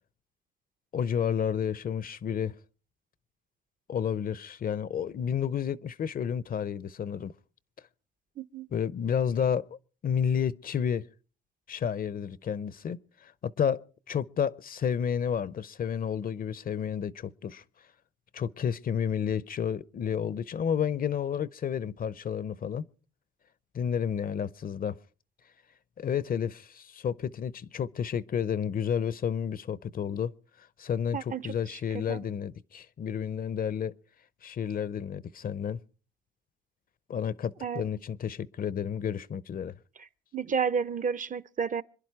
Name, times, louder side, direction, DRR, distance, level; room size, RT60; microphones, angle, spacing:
voice 1, 0.9-2.5 3.9-7.3 8.7-9.6 10.0-11.0 11.7-17.6 18.3-22.8 23.7-25.0 26.0-30.3 30.6-33.9 34.4-35.8 37.1-39.7, left 8 dB, 45° left, 0.7 m, -31 dB
voice 2, 8.4-8.7 31.1-31.4 31.7-31.8 32.1-32.2 37.6-37.8 40.3-41.8, right 6 dB, 40° right, 0.7 m, -31 dB
26.0 x 11.0 x 4.7 m
cardioid pair, 90°, 20 cm